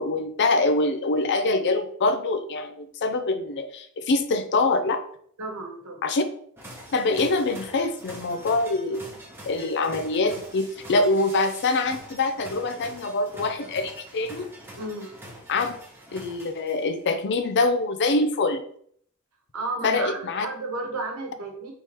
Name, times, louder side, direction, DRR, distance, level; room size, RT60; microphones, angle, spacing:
voice 1, 0.0-5.0 6.0-6.2 6.9-9.0 9.4-14.5 15.5-15.7 16.1-18.6 19.8-20.5, left 3 dB, 55° left, 8 dB, 0.5 m, -24 dB
voice 2, 5.4-6.1 14.8-15.1 19.5-21.7, right 2 dB, 75° right, 2 dB, 1.1 m, -33 dB
sound 1, 6.6-17.0, right 1 dB, 10° right, 0.9 m, -44 dB
4.4 x 3.6 x 3.1 m, 0.62 s
head